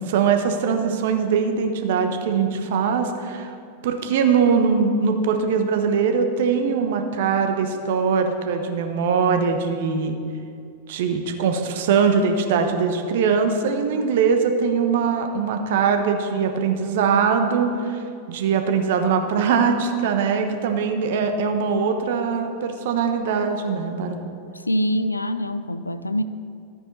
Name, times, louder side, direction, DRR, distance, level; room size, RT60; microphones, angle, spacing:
voice 1, 0.1-3.5 3.8-10.2 10.9-24.2, right 6 dB, 55° right, 6 dB, 1.0 m, -22 dB
voice 2, 24.7-26.2, equal, 85° left, 13 dB, 0.4 m, -24 dB
13.0 x 8.7 x 4.1 m, 2.4 s
figure-of-eight pair, 90°, 0 cm